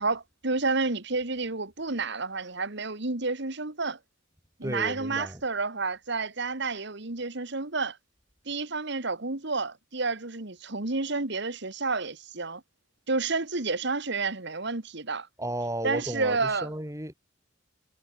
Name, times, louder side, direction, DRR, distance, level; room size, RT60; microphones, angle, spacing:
voice 1, 0.0-4.0 4.6-8.0 8.5-12.6 13.1-15.3 15.8-16.7, right 3 dB, 60° right, 2.0 m, -30 dB
voice 2, 4.6-5.4 15.4-17.1, right 1 dB, 15° right, 5.5 m, -33 dB
head